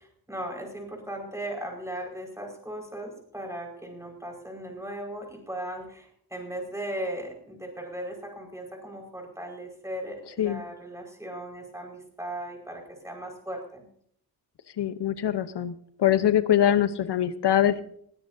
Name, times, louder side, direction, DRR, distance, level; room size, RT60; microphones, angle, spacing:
voice 1, 0.0-13.9 16.7-17.1, right 1 dB, 5° right, 1 dB, 5.1 m, -37 dB
voice 2, 14.8-17.8, left 10 dB, 90° left, 12 dB, 1.0 m, -23 dB
20.5 x 17.0 x 2.7 m, 0.67 s
wide cardioid pair, 140°, 40 cm